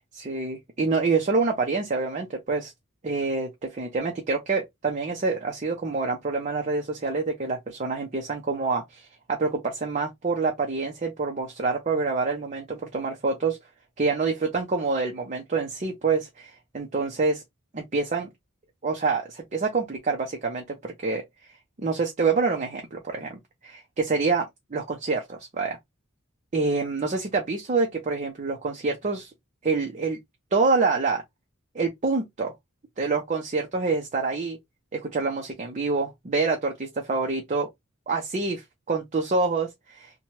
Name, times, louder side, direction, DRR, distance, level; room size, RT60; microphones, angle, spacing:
voice 1, 0.1-2.7 3.0-13.6 14.0-17.4 17.7-18.3 18.8-21.2 21.8-24.4 24.7-25.8 26.5-29.3 29.6-30.2 30.5-31.2 31.7-32.5 33.0-34.6 34.9-37.7 38.1-40.1, right 4 dB, 35° right, 0.6 m, -26 dB
3.0 x 2.2 x 2.8 m
head